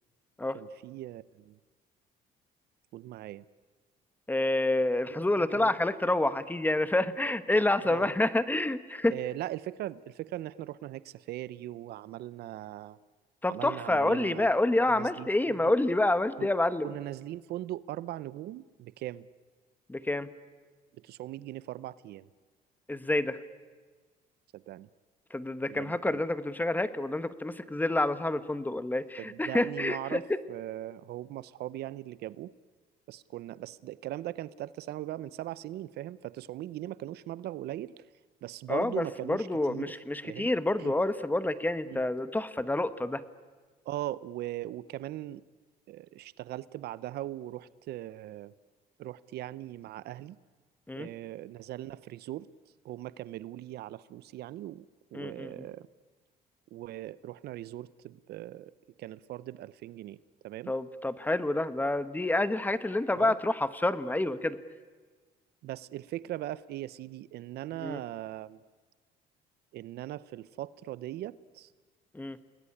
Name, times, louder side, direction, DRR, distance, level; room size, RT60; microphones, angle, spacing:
voice 1, 0.5-1.6 2.9-3.4 5.4-5.7 7.8-8.1 9.1-13.0 13.5-14.5 14.9-15.7 16.4-16.5 16.8-19.3 20.9-22.3 24.5-24.9 25.7-26.2 29.2-32.5 33.1-37.9 38.4-40.0 40.2-40.5 40.8-40.9 41.9-42.0 43.8-45.4 45.9-48.5 49.0-50.4 51.0-52.5 52.8-54.9 55.1-55.9 56.7-58.7 59.0-60.2 60.4-60.7 63.2-63.4 65.6-68.6 69.7-71.7, right 14 dB, 70° right, 18 dB, 0.7 m, -40 dB
voice 2, 4.3-9.2 13.4-16.9 19.9-20.3 22.9-23.4 25.3-30.2 38.7-43.2 50.9-51.1 55.1-55.6 60.7-64.6 67.8-68.0 72.1-72.4, left 2 dB, 10° left, 13 dB, 1.2 m, -28 dB
29.5 x 20.0 x 9.9 m, 1.4 s
cardioid pair, 110°, 17 cm